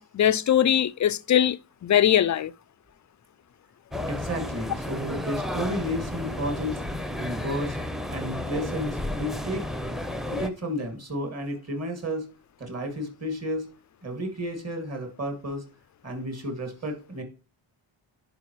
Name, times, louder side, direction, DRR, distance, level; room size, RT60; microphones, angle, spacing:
voice 1, 0.0-1.6 1.8-2.5, left 10 dB, 40° left, 0.4 m, -21 dB
sound 1, 3.9-10.5, left 1 dB, ahead, 0.7 m, -32 dB
voice 2, 4.1-6.8 7.2-7.8 8.1-9.7 10.3-12.3 12.6-13.7 14.0-15.6 16.0-17.2, equal, 30° right, 2.4 m, -32 dB
10.5 x 4.8 x 3.1 m
wide cardioid pair, 130°, 49 cm